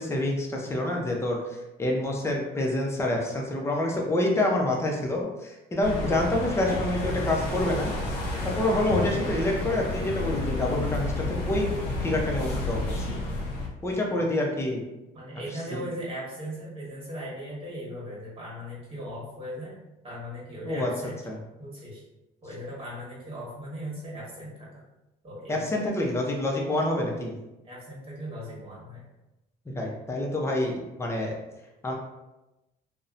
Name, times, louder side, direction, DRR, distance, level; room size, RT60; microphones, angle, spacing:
voice 1, 0.0-1.4 1.8-7.9 8.4-11.7 12.0-13.2 13.8-14.8 15.7-15.9 20.6-20.9 21.2-21.4 25.5-27.4 29.7-31.4 31.8-31.9, left 1 dB, 15° left, 0 dB, 0.5 m, -27 dB
sound 1, 5.8-13.7, left 2 dB, 85° left, 0.6 m, -30 dB
voice 2, 15.1-19.7 20.0-21.2 21.6-22.0 22.4-24.8 25.2-25.9 27.6-29.0, equal, 35° right, -7 dB, 1.2 m, -38 dB
2.7 x 2.1 x 2.4 m, 0.99 s
cardioid pair, 110°, 17 cm